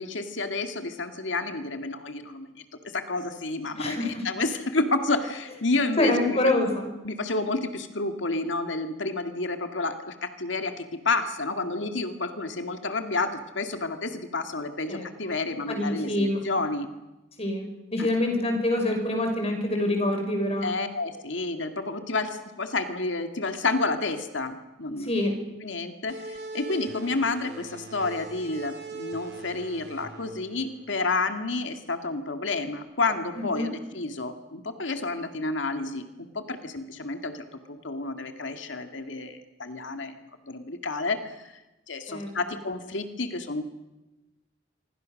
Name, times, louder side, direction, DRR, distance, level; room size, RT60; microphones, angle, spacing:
voice 1, 0.0-2.6 2.9-6.4 7.0-16.9 18.0-18.1 20.6-25.2 25.6-40.2 40.5-41.6 41.9-43.6, left 3 dB, 90° left, 7 dB, 2.1 m, -30 dB
voice 2, 3.8-4.2 6.0-6.9 14.9-15.3 15.7-16.5 17.4-20.7 25.0-25.3 33.3-33.7 42.1-42.3, left 1 dB, 35° left, 4 dB, 5.9 m, -26 dB
sound 1, 26.1-31.4, right 2 dB, 60° right, 3.9 m, -41 dB
26.0 x 25.5 x 6.5 m, 1.0 s
head